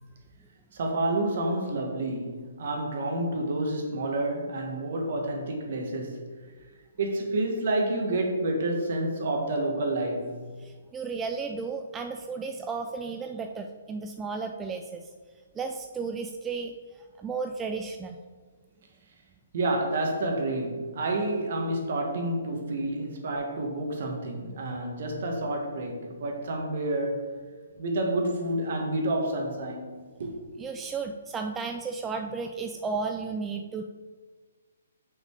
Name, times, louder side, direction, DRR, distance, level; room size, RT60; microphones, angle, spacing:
voice 1, 0.7-6.3 7.0-10.4 19.5-27.2 27.8-30.3, right 1 dB, 55° right, 1.7 m, -29 dB
voice 2, 10.6-15.1 15.6-16.7 17.2-18.2 30.6-33.8, right 4 dB, 15° right, 0.4 m, -33 dB
5.8 x 5.7 x 4.8 m
hypercardioid pair, 145°, 0 cm